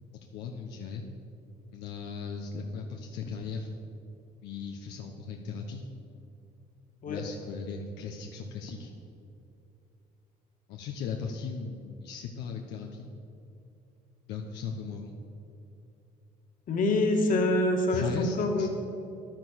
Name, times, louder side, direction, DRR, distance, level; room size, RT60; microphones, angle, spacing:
voice 1, 0.3-1.0 1.7-3.7 4.4-5.8 7.1-8.9 10.7-13.1 14.3-15.2 17.9-18.7, left 5 dB, 85° left, 2 dB, 1.1 m, -37 dB
voice 2, 16.7-18.7, left 1 dB, 50° left, 3 dB, 2.1 m, -26 dB
11.0 x 10.0 x 6.5 m, 2.7 s
cardioid pair, 110°, 17 cm